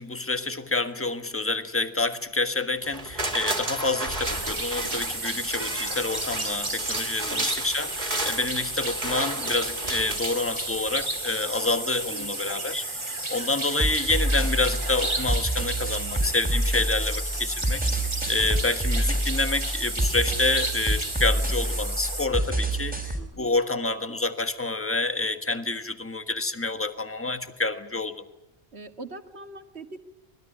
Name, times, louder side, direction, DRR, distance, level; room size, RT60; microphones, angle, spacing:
voice 1, 0.0-17.8 18.3-28.1, left 3 dB, 10° left, 1.6 m, -28 dB
sound 1, 2.8-11.0 11.4-11.5, right 2 dB, 45° right, 2.8 m, -33 dB
sound 2, 4.2-22.3, right 2 dB, 25° right, 2.4 m, -32 dB
sound 3, 13.8-23.2, right 1 dB, 10° right, 4.6 m, -28 dB
voice 2, 23.2-23.5 28.7-30.0, right 3 dB, 85° right, 2.3 m, -42 dB
25.0 x 20.5 x 9.9 m
omnidirectional pair, 1.1 m